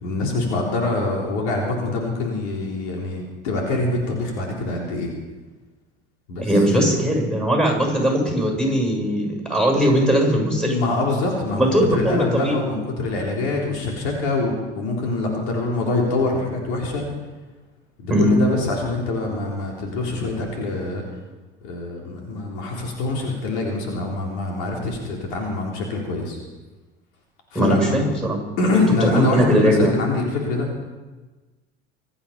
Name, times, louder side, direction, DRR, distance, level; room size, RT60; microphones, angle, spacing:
voice 1, 0.0-5.1 6.3-7.0 10.6-17.0 18.0-21.0 21.6-26.4 27.5-28.0 28.6-30.7, left 2 dB, 70° left, 0 dB, 3.6 m, -24 dB
voice 2, 6.4-10.8 11.6-12.6 18.1-18.3 27.5-28.4 28.7-29.9, equal, ahead, 0 dB, 7.4 m, -20 dB
25.5 x 9.0 x 5.8 m, 1.2 s
hypercardioid pair, 65°, 35 cm